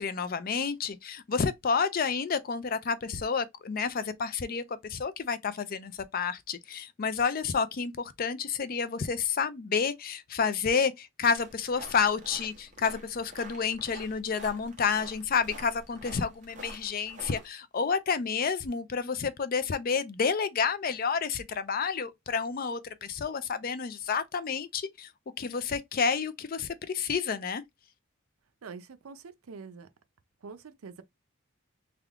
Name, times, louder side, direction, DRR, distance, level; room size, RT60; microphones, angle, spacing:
voice 1, 0.0-25.1 25.4-27.6, left 5 dB, 45° left, 0.4 m, -30 dB
sound 1, 11.3-17.5, right 1 dB, 35° right, 1.1 m, -47 dB
voice 2, 28.6-29.9 30.4-31.0, right 5 dB, 80° right, 0.5 m, -45 dB
3.6 x 2.2 x 3.4 m
head